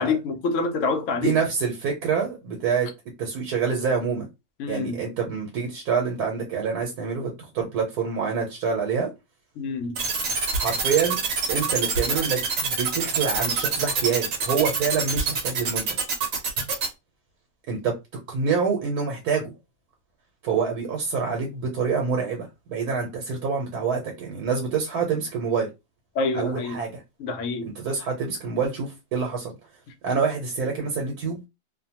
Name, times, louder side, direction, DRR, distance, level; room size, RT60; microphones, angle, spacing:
voice 1, 0.0-1.3 4.6-5.0 9.6-10.0 26.2-26.8 27.2-27.7, left 4 dB, 70° left, 0.8 m, -26 dB
voice 2, 1.2-2.9 3.2-4.3 4.7-9.1 10.5-11.1 11.5-15.8 17.7-17.9 18.3-19.5 20.4-25.7 26.3-27.0 27.7-29.5 30.0-31.4, right 5 dB, 85° right, 1.3 m, -26 dB
sound 1, 10.0-16.9, right 5 dB, 65° right, 1.1 m, -25 dB
2.7 x 2.1 x 2.8 m
omnidirectional pair, 1.6 m